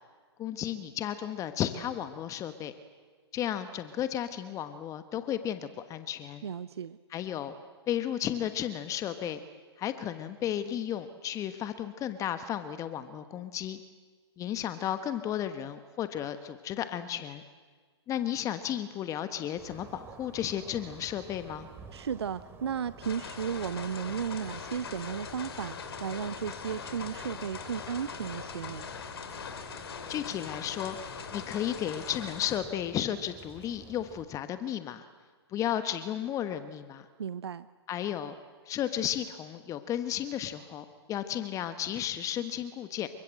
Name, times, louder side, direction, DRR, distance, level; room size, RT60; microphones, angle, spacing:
voice 1, 0.4-2.7 3.3-6.4 7.1-7.5 7.9-9.4 9.8-13.8 14.4-17.4 18.1-21.7 30.1-35.1 35.5-37.0 37.9-38.3 38.6-43.1, left 10 dB, 20° left, 10 dB, 1.3 m, -33 dB
voice 2, 6.4-7.0 21.9-25.7 26.0-28.9 37.2-37.7, right 7 dB, 70° right, 16 dB, 0.7 m, -34 dB
sound 1, 19.6-34.2, right 5 dB, 15° right, 3.1 m, -51 dB
sound 2, 23.0-32.6, left 6 dB, 65° left, 3.1 m, -41 dB
29.0 x 24.5 x 7.8 m, 1.5 s
figure-of-eight pair, 115°, 14 cm